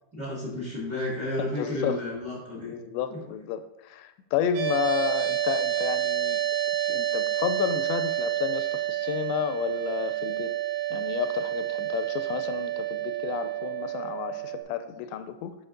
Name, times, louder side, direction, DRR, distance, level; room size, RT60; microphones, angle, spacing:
voice 1, 0.1-2.7 3.1-3.2, left 1 dB, 40° right, -6 dB, 1.5 m, -32 dB
voice 2, 1.5-2.0 2.7-6.4 6.9-10.5 10.9-15.6, left 9 dB, 85° left, 10 dB, 2.7 m, -31 dB
sound 1, 4.5-14.6, right 12 dB, 70° right, 2.3 m, -29 dB
7.9 x 4.7 x 3.8 m, 0.90 s
omnidirectional pair, 4.9 m